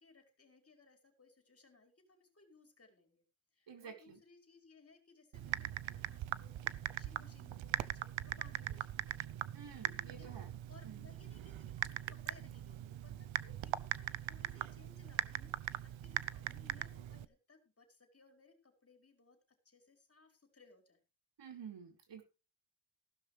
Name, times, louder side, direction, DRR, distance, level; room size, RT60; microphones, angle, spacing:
voice 1, 0.0-3.2 3.5-9.3 10.0-19.4 19.7-21.0, left 4 dB, 30° left, 5 dB, 5.1 m, -64 dB
voice 2, 3.7-4.2 9.5-10.5 10.8-11.1 21.4-22.2, right 7 dB, 65° right, 4 dB, 4.8 m, -51 dB
Typing, 5.3-17.3, right 12 dB, 90° right, 0.8 m, -41 dB
15.5 x 12.5 x 3.3 m, 0.31 s
wide cardioid pair, 130°, 45 cm